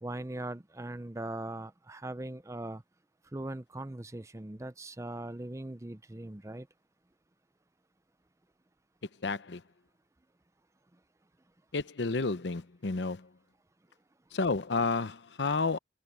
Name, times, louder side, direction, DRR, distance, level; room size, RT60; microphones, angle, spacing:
voice 1, 0.0-2.8 3.3-6.7, right 1 dB, 15° right, 0.6 m, -40 dB
voice 2, 9.2-9.6 11.7-13.3 14.3-15.8, left 3 dB, 80° left, 0.8 m, -31 dB
head